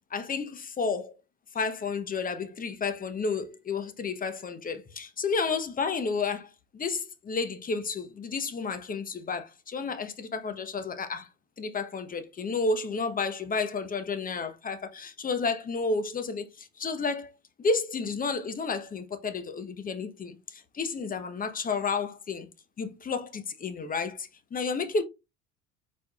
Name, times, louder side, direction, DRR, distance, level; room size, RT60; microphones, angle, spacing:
voice 1, 0.1-1.1 1.5-11.3 11.6-17.3 17.6-22.5 22.8-25.0, left 4 dB, 25° left, 0.8 m, -31 dB
4.6 x 4.2 x 2.3 m
hypercardioid pair, 85°, 36 cm